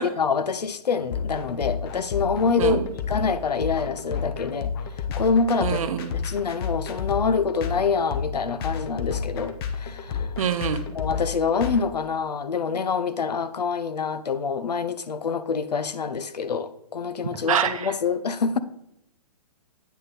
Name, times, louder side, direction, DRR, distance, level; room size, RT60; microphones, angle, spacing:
voice 1, 0.0-2.8 3.1-4.7 5.0-5.8 6.1-10.3 10.9-18.6, left 5 dB, 85° left, 0.6 m, -26 dB
sound 1, 1.1-11.8, left 6 dB, 40° left, 0.9 m, -30 dB
voice 2, 5.6-6.1 10.4-10.8 17.5-17.7, right 8 dB, 60° right, 0.8 m, -25 dB
8.5 x 5.4 x 4.0 m
hypercardioid pair, 135°, 20 cm